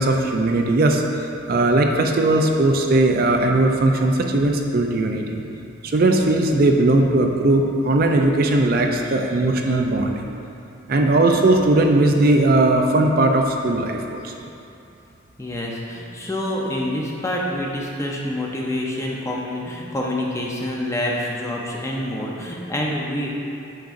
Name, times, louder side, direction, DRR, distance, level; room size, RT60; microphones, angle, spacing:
voice 1, 0.0-5.4 5.8-10.3 10.9-14.3, right 2 dB, 45° right, 2 dB, 0.4 m, -18 dB
voice 2, 15.4-23.3, left 1 dB, 15° left, -2 dB, 0.6 m, -27 dB
9.0 x 6.0 x 2.6 m, 2.6 s
head